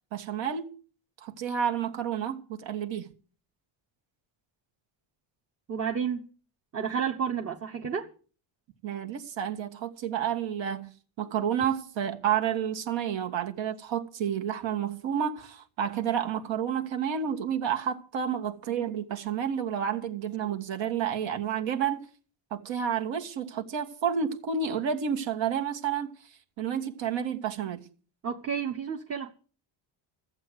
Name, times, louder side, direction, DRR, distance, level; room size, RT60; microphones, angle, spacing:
voice 1, 0.1-0.7 1.2-3.1 8.8-10.9 11.2-22.0 22.5-26.2 26.6-27.8, right 8 dB, 60° right, 1.7 m, -30 dB
voice 2, 5.7-6.3 6.7-8.1 28.2-29.3, right 7 dB, 30° right, 1.1 m, -31 dB
14.0 x 7.9 x 7.8 m
cardioid pair, 150°, 50 cm